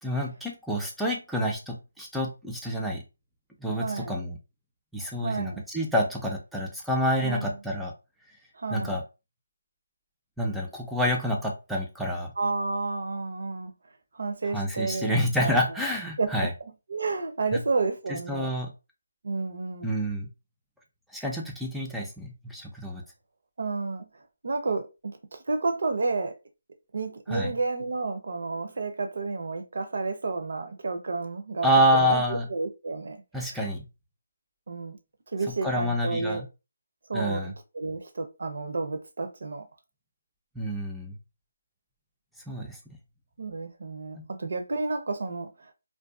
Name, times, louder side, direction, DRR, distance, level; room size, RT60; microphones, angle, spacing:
voice 1, 0.0-3.0 3.6-4.4 4.9-7.9 8.7-9.0 10.4-12.3 14.5-16.5 18.3-18.7 19.8-20.3 21.1-23.0 27.3-27.5 31.6-32.4 33.3-33.8 35.6-36.5 37.1-37.5 40.6-41.2 42.5-42.8 44.1-44.2, equal, ahead, 0.4 m, -28 dB
voice 2, 3.7-4.2 5.2-5.6 7.2-7.6 8.5-9.0 12.4-13.7 14.1-15.8 16.2-18.5 19.2-19.9 23.6-24.0 24.4-26.3 26.9-33.2 33.5-33.6 34.7-35.0 35.3-36.4 37.1-39.6 43.4-45.7, right 3 dB, 60° right, 0.6 m, -31 dB
2.6 x 2.2 x 2.3 m
figure-of-eight pair, 165°, 0 cm